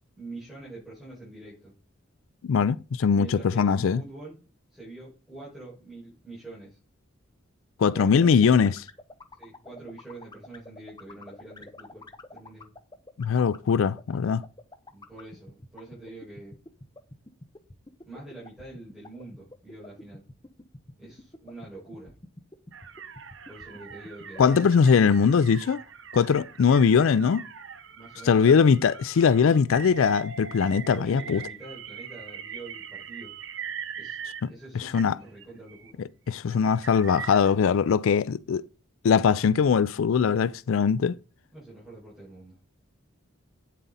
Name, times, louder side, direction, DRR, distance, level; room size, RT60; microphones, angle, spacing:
voice 1, 0.2-1.7 3.1-4.3 4.7-6.8 7.9-8.7 9.4-12.7 14.9-16.5 18.0-20.2 21.0-22.1 23.5-24.6 27.9-28.6 30.9-33.3 34.0-34.2 34.5-36.0 41.5-42.6, right 2 dB, ahead, 5.6 m, -45 dB
voice 2, 2.4-4.0 7.8-8.7 13.2-14.4 24.4-25.8 26.1-27.4 28.2-31.4 34.8-35.1 36.3-38.6 39.0-41.2, left 6 dB, 75° left, 0.4 m, -21 dB
sound 1, 8.2-25.3, left 2 dB, 20° left, 0.7 m, -45 dB
sound 2, 22.7-34.7 34.9-35.9 36.5-37.6, right 7 dB, 60° right, 0.8 m, -42 dB
9.2 x 7.4 x 4.1 m
head